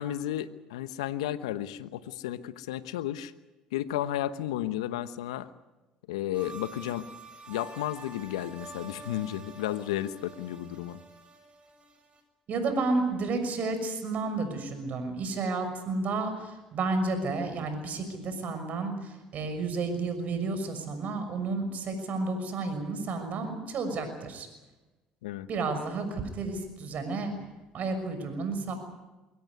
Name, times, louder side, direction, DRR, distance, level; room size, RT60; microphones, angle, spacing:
voice 1, 0.0-3.3 3.7-5.5 6.1-7.1 7.5-11.0 25.2-25.5, left 12 dB, 85° left, 13 dB, 1.1 m, -33 dB
sound 1, 6.3-12.2, right 3 dB, 35° right, 7.2 m, -48 dB
voice 2, 12.5-24.5 25.5-27.3 27.7-28.7, right 3 dB, 55° right, 8 dB, 6.3 m, -31 dB
23.0 x 17.5 x 9.6 m, 1.1 s
hypercardioid pair, 65°, 3 cm